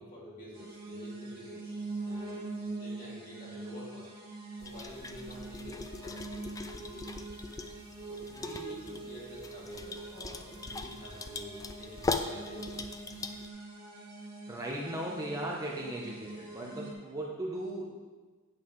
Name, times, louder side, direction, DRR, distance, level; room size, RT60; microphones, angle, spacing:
voice 1, 0.0-1.7 2.0-4.1 4.6-7.2 8.0-12.8, equal, 40° left, -6 dB, 2.7 m, -48 dB
sound 1, 0.5-16.9, right 3 dB, 45° right, 1.7 m, -44 dB
sound 2, 4.6-13.5, left 3 dB, 15° left, 0.3 m, -40 dB
voice 2, 14.5-17.9, right 1 dB, 15° right, -3 dB, 0.9 m, -37 dB
8.6 x 8.5 x 3.2 m, 1.3 s
head